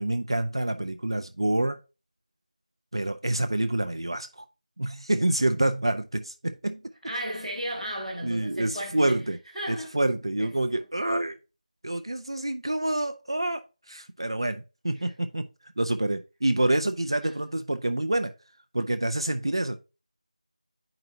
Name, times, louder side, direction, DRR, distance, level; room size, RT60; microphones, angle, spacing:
voice 1, 0.0-1.8 2.9-4.4 4.8-6.8 8.2-9.4 9.7-11.4 11.8-15.5 15.8-18.3 18.7-19.8, right 1 dB, 40° right, 0.4 m, -27 dB
voice 2, 7.0-9.2 9.5-9.9 10.4-10.5 14.9-15.1 17.2-17.3, equal, ahead, 0.7 m, -35 dB
9.0 x 4.9 x 2.6 m
figure-of-eight pair, 180°, 4 cm